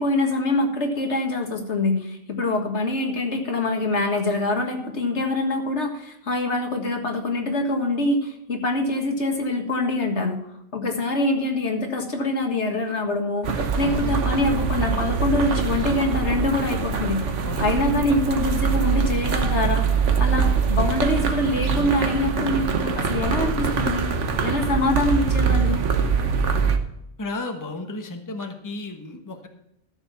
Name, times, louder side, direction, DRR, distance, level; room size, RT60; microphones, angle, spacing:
voice 1, 0.0-10.4 10.7-17.2 17.6-19.8 20.2-24.1 24.4-25.8, left 2 dB, 70° left, 3 dB, 2.0 m, -24 dB
sound 1, 13.4-26.8, right 6 dB, 75° right, 1.4 m, -23 dB
voice 2, 27.2-29.5, left 2 dB, 15° left, 5 dB, 1.1 m, -33 dB
13.0 x 6.8 x 5.7 m, 0.80 s
omnidirectional pair, 1.2 m